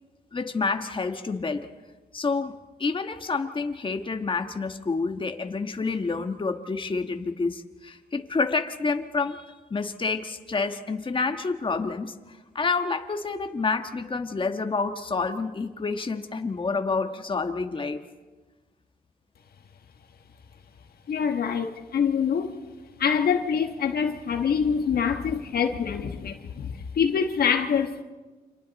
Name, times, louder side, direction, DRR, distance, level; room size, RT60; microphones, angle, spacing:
voice 1, 0.3-1.7 2.1-18.0, left 4 dB, 30° left, 1.4 m, -28 dB
voice 2, 21.1-22.6 23.0-28.0, left 7 dB, 75° left, 1.4 m, -25 dB
30.0 x 26.5 x 4.1 m
cardioid pair, 90°, 16 cm